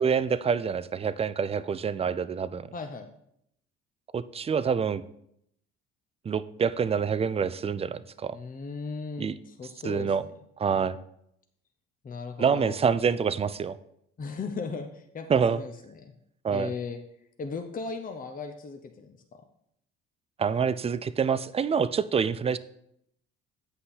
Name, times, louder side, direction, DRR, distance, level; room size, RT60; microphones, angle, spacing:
voice 1, 0.0-2.7 4.1-5.0 6.3-8.4 9.2-9.3 9.8-10.2 10.6-11.0 12.4-13.8 15.3-15.6 16.4-16.7 20.4-22.6, right 6 dB, 20° right, 15 dB, 0.4 m, -26 dB
voice 2, 2.7-3.1 8.3-10.1 12.0-12.8 14.2-16.1 16.5-17.0 17.4-19.4, left 4 dB, 25° left, 6 dB, 0.8 m, -37 dB
8.4 x 5.5 x 4.0 m, 0.75 s
hypercardioid pair, 60°, 30 cm